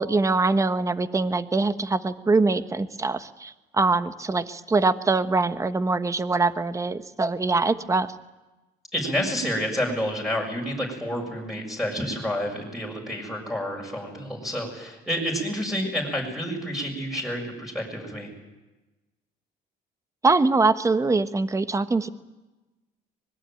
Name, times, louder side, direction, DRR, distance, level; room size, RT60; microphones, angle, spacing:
voice 1, 0.0-8.1 20.2-22.1, right 3 dB, 20° right, 11 dB, 1.2 m, -23 dB
voice 2, 8.9-18.3, equal, ahead, -1 dB, 6.9 m, -29 dB
25.0 x 21.5 x 9.1 m, 1.1 s
cardioid pair, 110°, 17 cm